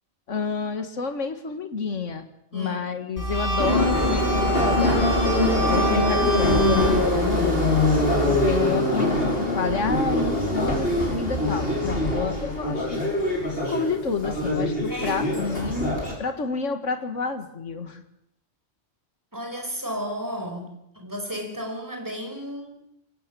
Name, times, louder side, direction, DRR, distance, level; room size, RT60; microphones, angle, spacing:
voice 1, 0.3-7.6 8.2-13.0 13.6-18.0, left 4 dB, 80° left, 8 dB, 2.1 m, -29 dB
sound 1, 3.2-8.6, right 1 dB, 15° left, 5.2 m, -27 dB
Subway metro underground, 3.6-16.1, left 1 dB, 50° left, 6.2 m, -23 dB
voice 2, 14.9-15.5 19.3-22.8, equal, 15° right, 3 dB, 4.9 m, -33 dB
23.5 x 18.0 x 7.0 m, 0.79 s
omnidirectional pair, 1.2 m